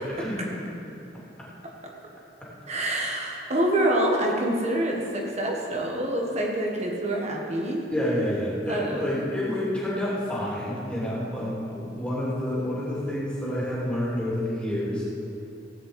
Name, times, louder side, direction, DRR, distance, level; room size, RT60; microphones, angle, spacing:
voice 1, 0.1-0.4 7.9-15.0, left 1 dB, 5° left, -7 dB, 3.0 m, -28 dB
voice 2, 2.7-7.8 8.7-9.1, right 1 dB, 35° right, -1 dB, 1.6 m, -26 dB
16.5 x 5.6 x 8.1 m, 2.9 s
head